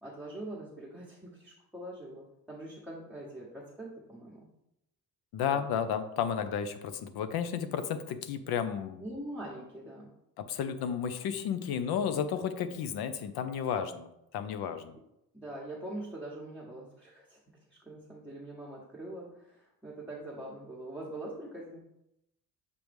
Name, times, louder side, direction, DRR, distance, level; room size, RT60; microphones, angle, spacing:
voice 1, 0.0-4.5 5.5-5.8 9.0-10.1 12.4-12.5 15.3-17.4 17.7-21.8, right 1 dB, 5° right, -6 dB, 1.0 m, -43 dB
voice 2, 5.3-9.0 10.4-15.0, left 8 dB, 90° left, 10 dB, 0.7 m, -33 dB
6.8 x 3.1 x 5.1 m, 0.83 s
cardioid pair, 160°, 36 cm